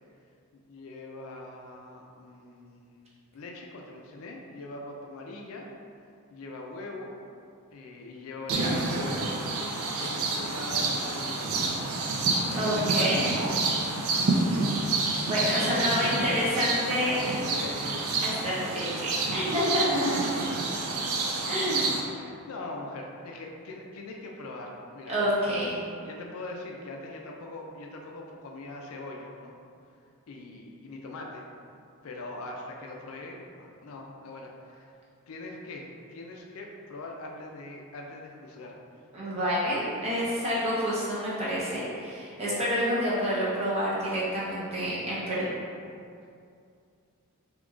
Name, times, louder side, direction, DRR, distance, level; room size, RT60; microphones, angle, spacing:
voice 1, 0.5-3.1 3.3-5.7 6.3-7.1 7.7-11.9 12.5-13.8 15.5-18.1 21.7-25.2 25.5-25.6 26.0-29.5 30.3-31.8 32.0-34.9 35.3-38.8, left 2 dB, 65° left, 0 dB, 0.4 m, -42 dB
sound 1, 8.5-22.0, right 3 dB, 70° right, 0.4 m, -29 dB
voice 2, 12.5-13.3 15.2-17.2 18.2-20.2 21.4-21.9 25.1-25.7 39.1-45.5, equal, 30° right, -8 dB, 0.8 m, -28 dB
3.7 x 2.9 x 2.4 m, 2.4 s
head